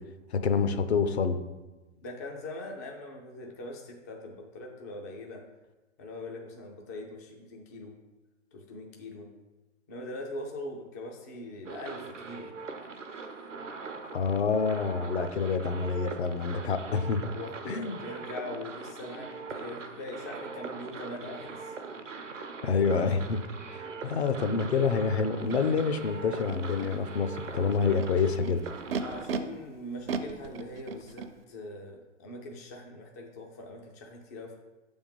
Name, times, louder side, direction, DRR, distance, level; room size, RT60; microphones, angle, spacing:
voice 1, 0.3-1.4 14.1-17.2 17.6-18.0 22.6-23.4 23.7-28.6, left 5 dB, 60° left, 10 dB, 0.7 m, -27 dB
voice 2, 2.0-5.4 6.0-7.9 8.5-9.3 9.9-12.5 17.2-21.7 29.0-34.6, left 1 dB, 15° left, 0 dB, 0.3 m, -42 dB
sound 1, 11.7-29.3, right 4 dB, 80° right, 0.9 m, -41 dB
Animal, 25.5-25.6 26.4-26.9 27.7-29.4 30.1-31.3, right 6 dB, 50° right, 0.6 m, -35 dB
6.8 x 3.6 x 5.3 m, 1.1 s
figure-of-eight pair, 125°, 37 cm